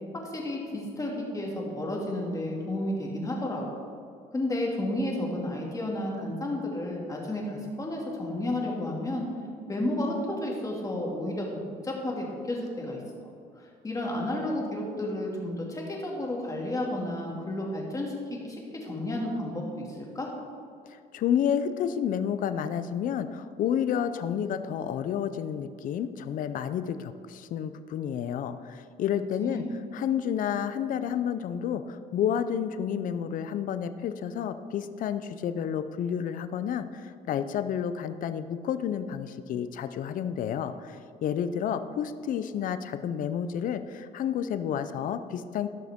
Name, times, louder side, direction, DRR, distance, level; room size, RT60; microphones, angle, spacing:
voice 1, 0.2-3.6 4.3-9.2 9.7-11.5 11.8-13.3 13.6-20.3 29.4-29.7, left 1 dB, 20° left, -2 dB, 2.3 m, -32 dB
voice 2, 20.9-29.6 29.9-45.7, left 8 dB, 60° left, 11 dB, 0.6 m, -30 dB
16.0 x 6.2 x 3.6 m, 2.3 s
cardioid pair, 105°, 16 cm